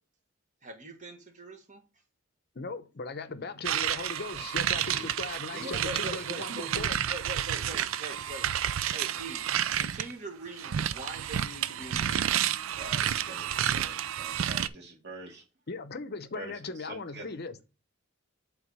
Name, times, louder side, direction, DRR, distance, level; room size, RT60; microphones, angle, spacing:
voice 1, 0.6-1.8 5.6-8.5 8.9-9.5 9.7-12.5, right 2 dB, 40° right, 1.5 m, -42 dB
voice 2, 2.6-7.0 15.7-17.5, left 3 dB, 55° left, 0.7 m, -38 dB
sound 1, 3.6-10.1 10.6-14.7, right 10 dB, 85° right, 0.4 m, -30 dB
voice 3, 6.1-6.6 12.7-15.4 16.3-17.3, right 2 dB, 55° right, 2.3 m, -46 dB
7.8 x 3.6 x 5.3 m
head